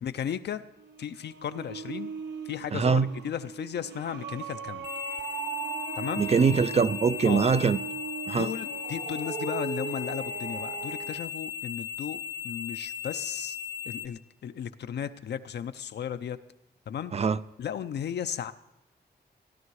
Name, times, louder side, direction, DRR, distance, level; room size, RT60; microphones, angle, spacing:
voice 1, 0.0-0.6 1.0-2.1 2.5-4.9 6.0-6.2 7.2-7.5 8.4-12.2 12.4-13.6 13.9-16.4 16.9-17.1 17.6-18.5, left 8 dB, 75° left, 0.6 m, -35 dB
sound 1, 0.7-11.2, right 7 dB, 90° right, 1.0 m, -38 dB
voice 2, 2.7-3.1 6.2-7.8 8.3-8.5 17.1-17.4, right 5 dB, 35° right, 0.4 m, -23 dB
sound 2, 4.8-14.1, left 9 dB, 30° left, 0.7 m, -37 dB
16.0 x 11.5 x 4.8 m
wide cardioid pair, 110°, 17 cm